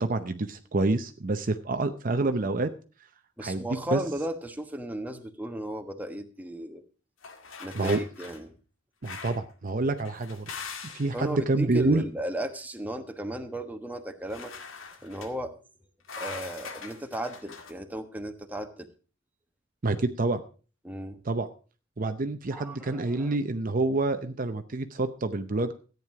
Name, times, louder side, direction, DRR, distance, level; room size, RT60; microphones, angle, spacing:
voice 1, 0.0-2.7 3.4-3.7 3.9-4.0 7.7-8.0 9.0-10.5 10.9-12.0 19.8-20.4 21.3-21.5 22.0-25.7, right 2 dB, 45° right, 8 dB, 0.7 m, -27 dB
voice 2, 3.4-6.8 7.6-8.5 11.1-14.5 15.0-15.6 16.2-18.9 20.8-21.2 22.5-23.4, right 1 dB, 10° right, 6 dB, 1.2 m, -35 dB
sound 1, 7.2-8.4 9.0-9.5 10.0-11.2 14.3-15.3 16.0-17.7, left 5 dB, 85° left, 2.1 m, -41 dB
14.0 x 9.3 x 4.8 m, 0.37 s
head